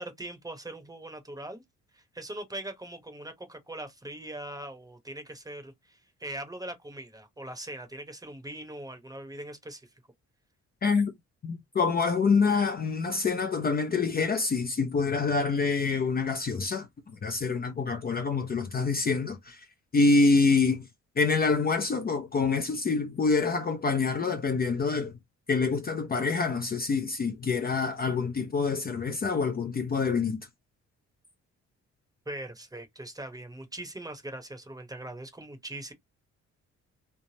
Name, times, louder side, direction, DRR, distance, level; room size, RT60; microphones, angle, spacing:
voice 1, 0.0-1.6 1.9-9.9 32.3-35.9, right 1 dB, 10° right, 0.9 m, -41 dB
voice 2, 10.8-11.1 11.4-16.9 17.2-19.6 19.9-20.9 21.2-25.1 25.5-30.4, left 4 dB, 30° left, 0.5 m, -26 dB
3.3 x 2.0 x 2.7 m
cardioid pair, 90°, 30 cm